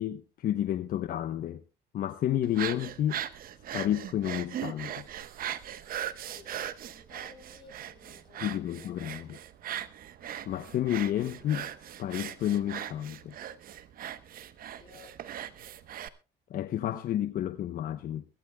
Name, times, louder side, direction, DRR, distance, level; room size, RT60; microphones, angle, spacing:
voice 1, 0.0-1.6 1.9-3.2 3.7-5.1 8.4-9.4 10.5-11.7 12.0-13.4 16.5-18.3, left 11 dB, 60° left, 0.8 m, -31 dB
sound 1, 2.4-16.1, right 10 dB, 60° right, 1.0 m, -39 dB
voice 2, 6.3-9.0 14.5-15.2, left 4 dB, 25° left, 6.6 m, -55 dB
22.0 x 14.5 x 2.2 m
cardioid pair, 110°, 17 cm